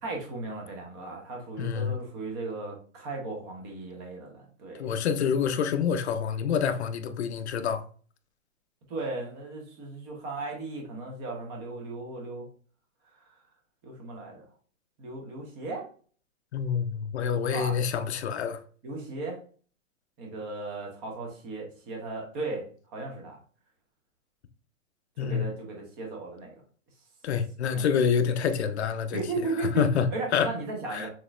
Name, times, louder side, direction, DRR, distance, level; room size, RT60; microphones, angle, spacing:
voice 1, 0.0-5.0 8.9-12.5 13.1-13.4 13.8-14.4 15.0-15.9 17.5-17.7 18.8-19.4 20.2-23.4 25.2-26.5 27.7-27.8 29.1-31.1, right 3 dB, 15° right, 0.7 m, -36 dB
voice 2, 1.6-2.0 4.8-7.8 16.5-18.6 25.2-25.4 27.2-29.2 29.6-30.1 30.3-30.5 30.9-31.1, left 7 dB, 55° left, 0.6 m, -27 dB
6.2 x 3.0 x 2.4 m
hypercardioid pair, 165°, 41 cm